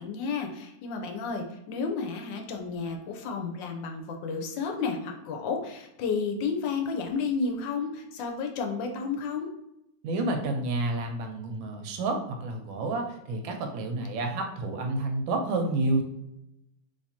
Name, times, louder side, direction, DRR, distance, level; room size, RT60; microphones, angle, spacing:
voice 1, 0.0-9.5, left 5 dB, 75° left, 3 dB, 1.3 m, -32 dB
voice 2, 10.0-16.0, right 2 dB, 85° right, 4 dB, 1.4 m, -29 dB
3.4 x 2.9 x 2.7 m, 0.85 s
omnidirectional pair, 2.1 m